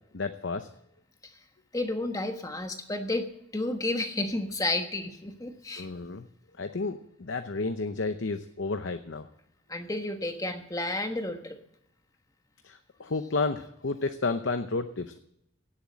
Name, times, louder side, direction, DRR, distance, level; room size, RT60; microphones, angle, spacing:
voice 1, 0.1-0.7 5.8-6.3 6.6-9.3 12.6-15.2, left 3 dB, 60° left, 8 dB, 0.7 m, -31 dB
voice 2, 1.7-5.9 9.7-11.6, left 2 dB, 15° left, 6 dB, 1.3 m, -31 dB
17.0 x 7.4 x 7.5 m, 0.80 s
head